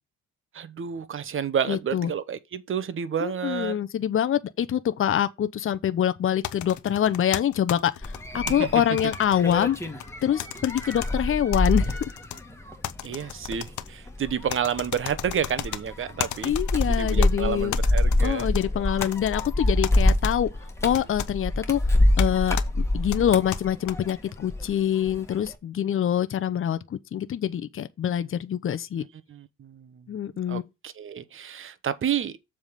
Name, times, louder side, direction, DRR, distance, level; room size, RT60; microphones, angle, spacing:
voice 1, 0.5-3.8 8.3-8.7 13.0-16.5 16.9-18.5 29.3-30.1 30.5-32.4, right 8 dB, 45° right, 1.0 m, -30 dB
voice 2, 1.7-2.1 3.2-9.8 10.2-12.1 16.4-17.8 18.2-20.5 20.8-21.8 22.2-29.0 30.1-30.6, left 10 dB, 45° left, 0.8 m, -25 dB
sound 1, 6.4-8.5 9.0-10.1 10.4-11.1 11.5-12.4 12.8-13.9 14.5-15.8 16.2-17.3 17.7-18.6 19.0-19.5 19.8-20.3 20.9-21.3 22.2-22.3 22.6-22.7 23.1-23.9, left 12 dB, 75° left, 0.9 m, -34 dB
sound 2, 8.0-24.7 25.1-25.5, left 1 dB, 10° left, 1.7 m, -26 dB
7.4 x 3.7 x 6.5 m
cardioid pair, 90°, 30 cm